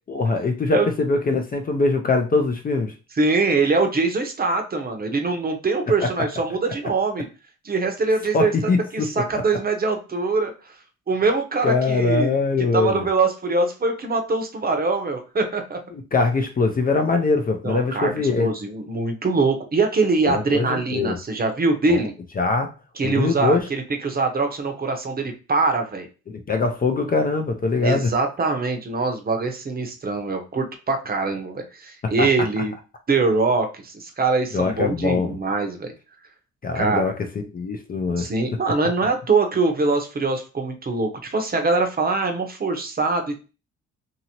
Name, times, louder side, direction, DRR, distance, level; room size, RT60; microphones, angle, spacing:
voice 1, 0.1-2.9 6.0-6.1 8.3-9.1 11.6-13.0 15.9-18.5 20.3-21.2 21.9-22.1 22.4-22.7 23.0-23.7 26.3-28.1 32.0-32.5 34.5-35.4 36.6-37.2 37.5-38.3, left 3 dB, 30° left, 5 dB, 0.4 m, -22 dB
voice 2, 3.2-7.3 7.6-8.5 8.9-10.7 11.1-12.4 12.7-15.8 17.6-18.1 18.4-22.1 23.0-26.1 27.8-32.7 33.1-35.9 36.7-37.1 38.2-43.5, right 3 dB, 30° right, 5 dB, 0.7 m, -23 dB
2.7 x 2.7 x 2.9 m, 0.33 s
cardioid pair, 90°, 30 cm